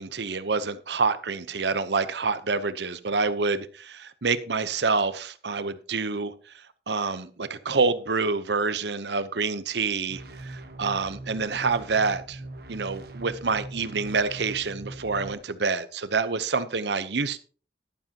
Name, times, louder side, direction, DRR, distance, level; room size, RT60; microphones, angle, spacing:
voice 1, 0.0-6.3 6.9-12.4 12.7-17.4, right 4 dB, 75° right, 14 dB, 0.9 m, -27 dB
sound 1, 10.1-15.3, right 2 dB, 60° right, 1.3 m, -41 dB
12.5 x 11.5 x 2.9 m, 0.41 s
head